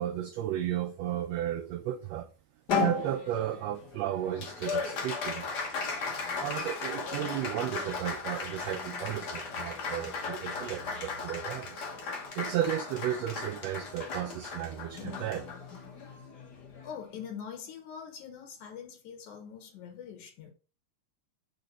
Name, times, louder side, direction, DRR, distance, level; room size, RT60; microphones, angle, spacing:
voice 1, 0.0-2.3 2.8-5.5 6.4-11.9 12.3-15.5, right 12 dB, 80° right, 1.5 m, -34 dB
Applause, 2.7-17.3, left 4 dB, 55° left, 1.2 m, -36 dB
voice 2, 16.8-20.5, left 7 dB, 80° left, 2.5 m, -43 dB
5.1 x 4.0 x 5.2 m
omnidirectional pair, 3.4 m